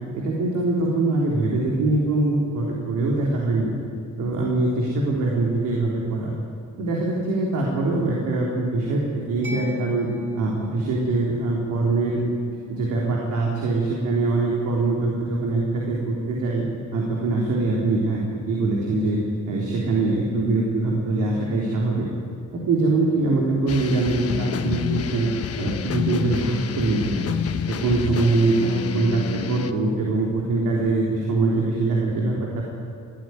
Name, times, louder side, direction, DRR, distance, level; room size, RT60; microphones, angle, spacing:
voice 1, 0.1-3.7 4.2-6.3 6.8-10.1 10.3-12.2 12.7-16.6 16.9-18.2 18.5-19.2 19.5-22.1 22.7-25.3 25.6-27.4 27.7-32.6, right 2 dB, 80° right, -3 dB, 3.9 m, -23 dB
Mallet percussion, 9.4-16.8, left 3 dB, 40° right, 6.1 m, -42 dB
sound 1, 23.7-29.7, left 7 dB, 50° left, 1.2 m, -29 dB
21.0 x 14.0 x 9.6 m, 2.3 s
cardioid pair, 90°, 30 cm